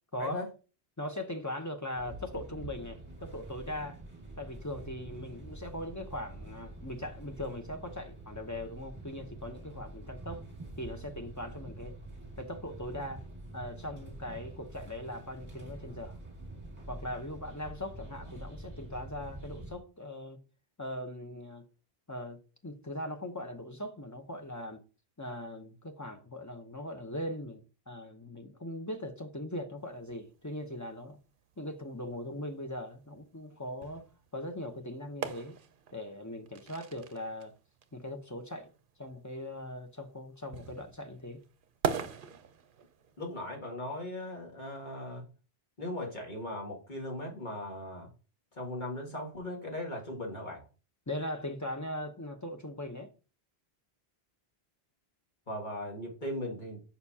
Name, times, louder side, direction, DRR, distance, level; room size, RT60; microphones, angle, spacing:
voice 1, 1.0-4.0 4.4-10.4 10.8-12.0 12.4-13.3 13.5-16.2 16.9-20.4 20.8-21.6 22.1-24.8 25.2-31.2 31.6-34.1 34.3-35.6 35.9-37.6 37.9-38.7 39.0-41.4 51.1-53.1, left 1 dB, 20° left, 0.7 m, -40 dB
sound 1, 1.9-19.8, right 2 dB, 25° right, 2.0 m, -46 dB
sound 2, 29.8-43.5, right 6 dB, 60° right, 0.8 m, -42 dB
voice 2, 43.2-45.3 45.8-48.1 48.5-50.6 55.5-56.8, left 1 dB, 50° left, 1.9 m, -38 dB
6.7 x 5.4 x 2.8 m
omnidirectional pair, 1.0 m